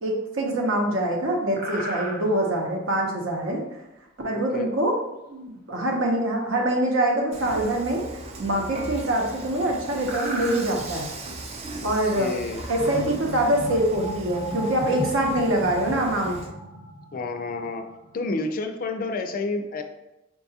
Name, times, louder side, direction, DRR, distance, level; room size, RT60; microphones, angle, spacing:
voice 1, 0.0-3.6 4.2-5.0 5.3-8.1 8.4-11.1 11.8-12.3 12.7-16.4, right 1 dB, 75° right, 0 dB, 0.8 m, -24 dB
sound 1, 1.4-2.4 5.4-5.5 9.0-9.1 9.5-9.6 10.0-10.8 11.5-11.6 12.3-13.3, right 1 dB, 50° right, 0.9 m, -35 dB
voice 2, 4.3-4.7 11.8-12.6 17.1-17.9 18.1-19.8, left 3 dB, 45° left, 6 dB, 0.3 m, -30 dB
Dishes pots and pans / Frying (food), 7.3-16.5, right 2 dB, 30° right, 0.4 m, -38 dB
sound 2, 12.8-18.1, equal, 15° right, 0.9 m, -36 dB
4.7 x 2.3 x 2.7 m, 0.93 s
head